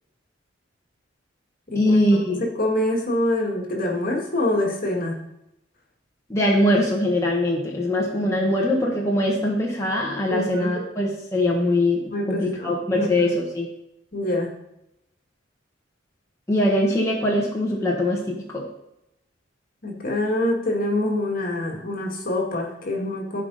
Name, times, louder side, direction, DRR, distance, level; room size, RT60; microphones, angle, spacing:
voice 1, 1.7-2.4 6.3-13.7 16.5-18.6, left 1 dB, 15° left, -4 dB, 1.4 m, -22 dB
voice 2, 2.3-5.2 10.3-10.7 12.1-13.3 14.1-14.5 19.8-23.4, left 1 dB, 50° left, 0 dB, 2.0 m, -25 dB
14.5 x 5.1 x 4.2 m, 0.84 s
head